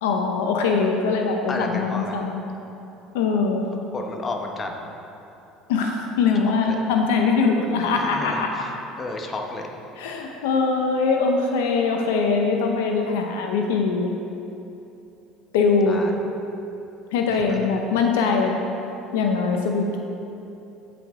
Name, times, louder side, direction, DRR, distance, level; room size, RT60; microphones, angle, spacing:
voice 1, 0.0-2.5 3.1-3.7 5.7-8.6 10.0-14.1 15.5-16.1 17.1-18.6 19.1-20.0, left 4 dB, 90° left, 2 dB, 0.8 m, -22 dB
voice 2, 1.5-2.3 3.9-4.8 6.4-6.8 7.9-9.7 15.9-16.1 17.3-17.7, left 3 dB, 30° left, 2 dB, 1.1 m, -32 dB
14.5 x 5.2 x 3.7 m, 2.9 s
supercardioid pair, 105°, 0 cm